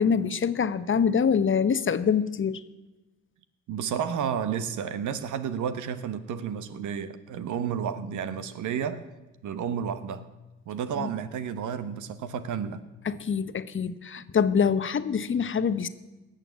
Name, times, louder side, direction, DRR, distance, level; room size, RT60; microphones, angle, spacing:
voice 1, 0.0-2.6 11.0-11.1 13.0-15.9, left 6 dB, 40° left, 0.9 m, -25 dB
voice 2, 3.7-9.0 9.4-10.2 10.7-12.8, right 8 dB, 65° right, 1.2 m, -31 dB
18.0 x 6.7 x 8.6 m
hypercardioid pair, 50°, 32 cm